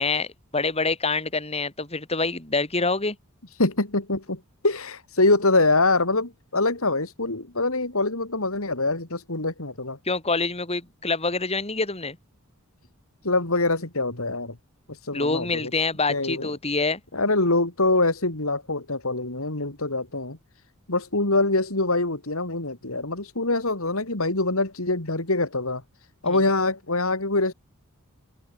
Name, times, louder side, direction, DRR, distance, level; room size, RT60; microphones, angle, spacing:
voice 1, 0.0-3.2 10.0-12.2 15.1-17.0 26.2-26.4, left 3 dB, 30° left, 4.8 m, -26 dB
voice 2, 3.6-10.0 13.2-14.6 15.0-15.7 16.1-16.5 17.1-20.4 20.9-25.8 26.2-27.5, left 2 dB, 65° left, 3.5 m, -24 dB
head